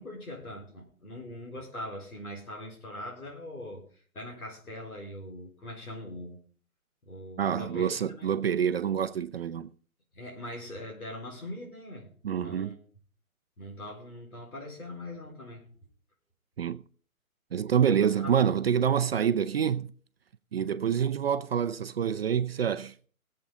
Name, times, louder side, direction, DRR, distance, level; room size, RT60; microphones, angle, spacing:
voice 1, 0.0-6.4 7.0-8.3 10.1-12.1 12.4-12.8 13.6-15.7 17.8-18.5, left 1 dB, 90° left, 4.5 m, -41 dB
voice 2, 7.4-9.7 12.2-12.8 16.6-16.8 17.5-19.9 20.5-22.9, right 8 dB, 45° right, 0.6 m, -27 dB
20.5 x 7.7 x 3.9 m
hypercardioid pair, 145°, 43 cm